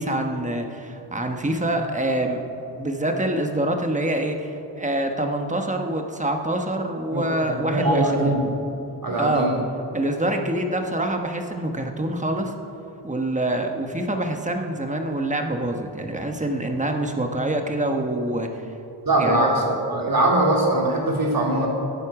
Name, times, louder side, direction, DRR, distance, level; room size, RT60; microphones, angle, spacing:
voice 1, 0.0-8.3 9.2-9.5 9.9-12.5 13.0-18.6 19.2-19.4, right 1 dB, 15° right, 4 dB, 1.2 m, -25 dB
voice 2, 7.1-8.5 9.0-9.6 19.1-21.7, right 1 dB, 50° right, -1 dB, 2.8 m, -22 dB
18.5 x 11.0 x 4.9 m, 2.8 s
wide cardioid pair, 160°, 43 cm